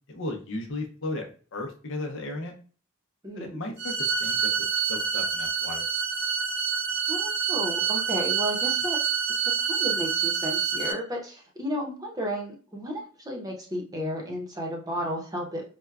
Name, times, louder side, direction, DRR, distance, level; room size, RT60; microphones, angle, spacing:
voice 1, 0.1-2.5 3.4-5.8, left 2 dB, 65° left, 3 dB, 0.7 m, -35 dB
voice 2, 3.2-3.6 7.1-9.0 9.3-9.4 9.7-15.6, equal, 20° right, 0 dB, 0.7 m, -33 dB
sound 1, 3.8-10.9, right 7 dB, 55° right, 0.8 m, -27 dB
4.5 x 2.2 x 2.3 m, 0.40 s
head